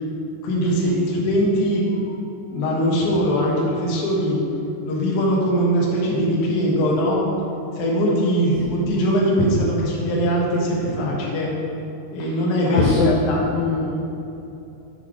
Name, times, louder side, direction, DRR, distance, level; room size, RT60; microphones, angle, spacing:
voice 1, 0.4-2.2 2.5-4.4 4.8-7.2 7.8-11.5 12.1-13.5, equal, 60° left, -4 dB, 2.2 m, -21 dB
voice 2, 12.7-13.2 13.5-13.9, left 4 dB, 80° left, -6 dB, 2.2 m, -21 dB
7.8 x 6.6 x 3.7 m, 2.9 s
omnidirectional pair, 4.9 m